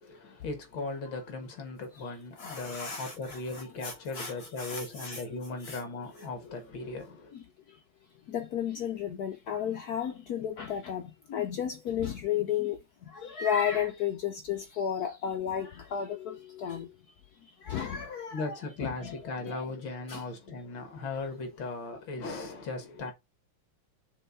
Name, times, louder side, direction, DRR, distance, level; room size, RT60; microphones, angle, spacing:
voice 1, 0.0-7.3 17.9-23.1, left 3 dB, 60° left, 2.3 m, -38 dB
voice 2, 2.4-3.4 3.8-4.3 4.6-5.2 5.7-5.8 8.3-11.0 11.3-12.8 13.2-16.9 17.7-18.6 18.8-19.1 19.5-19.6 20.1-20.2, left 8 dB, 80° left, 0.8 m, -33 dB
5.5 x 4.0 x 5.4 m
omnidirectional pair, 2.4 m